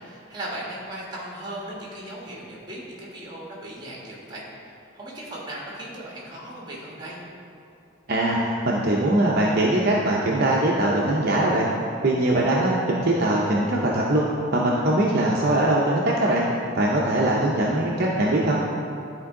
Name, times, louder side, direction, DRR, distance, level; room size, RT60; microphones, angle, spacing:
voice 1, 0.0-7.2, right 1 dB, 20° right, -4 dB, 1.4 m, -37 dB
voice 2, 8.1-11.7 12.0-16.5 16.7-18.5, right 1 dB, 50° right, -4 dB, 0.7 m, -21 dB
11.0 x 4.5 x 3.7 m, 2.6 s
head